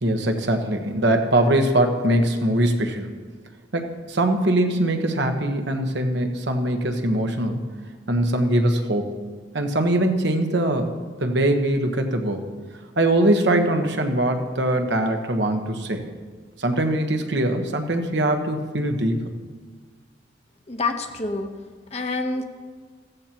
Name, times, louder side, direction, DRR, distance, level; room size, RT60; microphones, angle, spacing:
voice 1, 0.0-3.1 3.7-7.7 8.1-9.1 9.5-12.4 13.0-16.1 16.6-19.2, right 1 dB, 60° right, 5 dB, 1.2 m, -22 dB
voice 2, 20.7-21.5 21.9-22.4, left 3 dB, 35° left, 4 dB, 1.0 m, -27 dB
16.0 x 14.5 x 3.0 m, 1.6 s
head